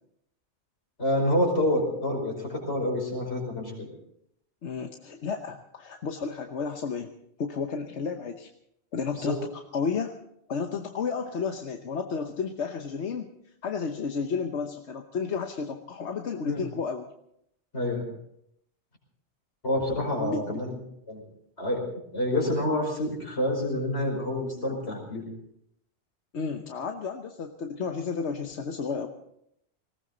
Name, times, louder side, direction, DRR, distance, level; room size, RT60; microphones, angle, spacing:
voice 1, 1.0-3.9 9.1-9.4 16.5-16.6 17.7-18.0 19.6-20.8 21.1-21.2 21.6-21.8 22.1-25.2, left 1 dB, 70° left, 1 dB, 5.4 m, -27 dB
voice 2, 4.6-7.1 7.4-8.5 8.9-9.4 9.7-10.1 10.5-13.3 13.6-17.1 19.9-20.6 26.3-29.1, left 5 dB, 90° left, 5 dB, 1.3 m, -32 dB
19.5 x 18.0 x 3.9 m, 0.74 s
omnidirectional pair, 1.1 m